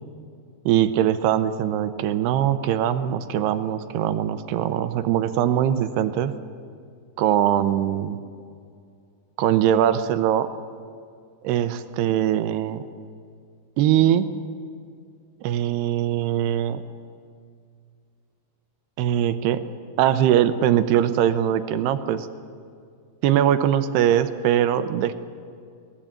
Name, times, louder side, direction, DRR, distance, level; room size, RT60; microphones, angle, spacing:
voice 1, 0.7-6.3 7.2-8.2 9.4-10.5 11.4-12.8 13.8-14.3 15.4-16.8 19.0-19.6 20.0-22.3 23.2-25.1, right 10 dB, 80° right, 11 dB, 2.6 m, -21 dB
26.0 x 19.5 x 8.9 m, 2.3 s
omnidirectional pair, 5.3 m